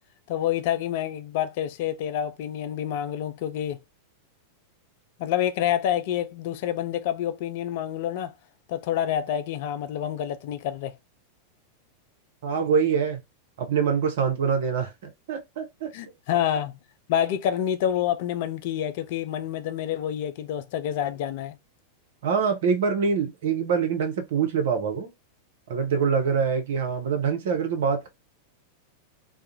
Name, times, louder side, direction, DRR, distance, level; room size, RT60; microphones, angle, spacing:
voice 1, 0.3-3.8 5.2-8.3 8.7-11.0 15.9-16.8 17.1-21.6, left 10 dB, 50° left, 0.3 m, -28 dB
voice 2, 12.4-13.2 13.6-15.9 22.2-25.1 25.7-28.1, right 6 dB, 55° right, 0.7 m, -25 dB
2.3 x 2.0 x 2.8 m
figure-of-eight pair, 90°, 0 cm